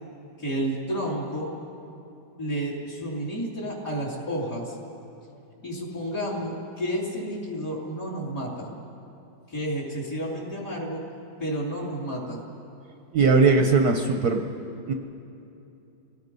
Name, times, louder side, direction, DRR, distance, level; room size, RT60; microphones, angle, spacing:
voice 1, 0.4-1.5 2.4-4.8 5.6-8.7 9.5-11.0 11.4-12.4, equal, 45° left, -4 dB, 3.4 m, -31 dB
voice 2, 13.1-14.4 14.9-15.0, right 4 dB, 60° right, 4 dB, 1.2 m, -19 dB
27.5 x 18.0 x 5.4 m, 2.8 s
omnidirectional pair, 2.2 m